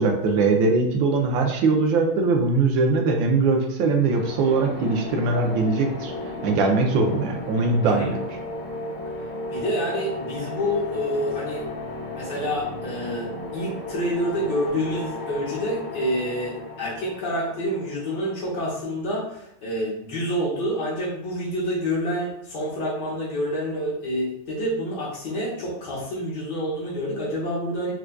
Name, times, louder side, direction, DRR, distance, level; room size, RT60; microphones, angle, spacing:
voice 1, 0.0-6.1 6.4-8.2, right 3 dB, 80° right, 2 dB, 1.3 m, -21 dB
sound 1, 4.0-18.7, left 1 dB, 45° left, 1.0 m, -34 dB
voice 2, 9.5-11.6 12.1-27.9, equal, 60° left, -5 dB, 1.7 m, -28 dB
4.5 x 2.4 x 2.2 m, 0.76 s
omnidirectional pair, 2.1 m